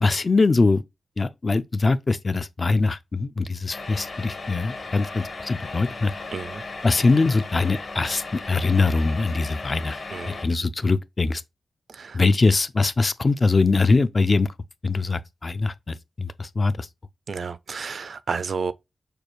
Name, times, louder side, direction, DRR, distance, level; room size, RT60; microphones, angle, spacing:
voice 1, 0.0-0.8 1.2-6.1 6.8-10.0 10.3-11.4 12.1-14.5 14.8-16.9, left 3 dB, 30° left, 0.3 m, -22 dB
sound 1, 3.7-10.5, left 3 dB, 50° left, 1.0 m, -36 dB
voice 2, 6.3-6.6 10.1-10.4 11.9-12.2 17.3-18.7, right 5 dB, 55° right, 0.4 m, -31 dB
6.6 x 2.3 x 3.0 m
wide cardioid pair, 145°, 0 cm